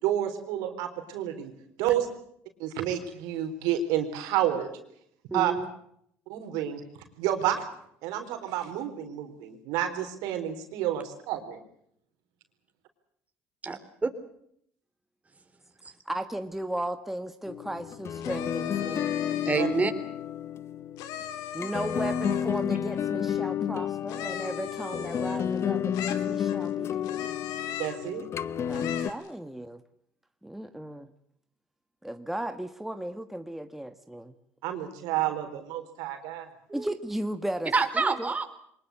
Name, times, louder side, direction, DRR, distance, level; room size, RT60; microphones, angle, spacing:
voice 1, 0.0-1.5 1.8-2.1 2.6-4.7 5.3-5.5 6.3-6.8 7.2-7.7 8.0-11.6 19.6-19.7 27.8-28.3 34.6-36.5, right 11 dB, 80° right, 6 dB, 4.1 m, -30 dB
voice 2, 5.3-5.6 13.6-14.1 19.5-19.9 36.7-36.9 37.7-38.4, right 4 dB, 25° right, 7 dB, 3.7 m, -27 dB
voice 3, 16.0-19.1 21.5-27.4 28.7-29.8 30.4-31.1 32.0-34.3 36.7-38.3, right 1 dB, 5° right, 8 dB, 1.5 m, -36 dB
sound 1, 17.5-29.1, left 9 dB, 45° left, 1.0 m, -31 dB
sound 2, 18.2-19.8 21.0-22.6 24.1-25.6 25.9-26.7 27.0-28.1 28.7-29.3, left 9 dB, 75° left, 2.8 m, -38 dB
23.5 x 20.5 x 7.9 m, 0.70 s
supercardioid pair, 75°, 6 cm